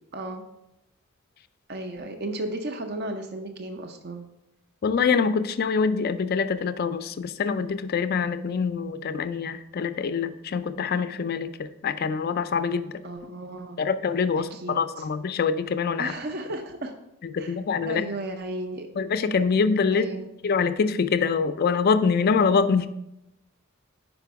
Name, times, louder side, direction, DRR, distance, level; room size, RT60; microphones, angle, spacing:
voice 1, 0.1-0.4 1.7-4.3 13.0-13.8 14.4-14.7 16.0-16.9 17.4-17.6 17.9-18.9 19.9-20.3, right 1 dB, 50° right, 5 dB, 0.5 m, -34 dB
voice 2, 4.8-13.3 13.8-16.1 17.2-18.1 19.0-20.1 20.4-22.9, left 5 dB, 45° left, 12 dB, 0.4 m, -25 dB
5.1 x 4.9 x 4.6 m, 0.85 s
head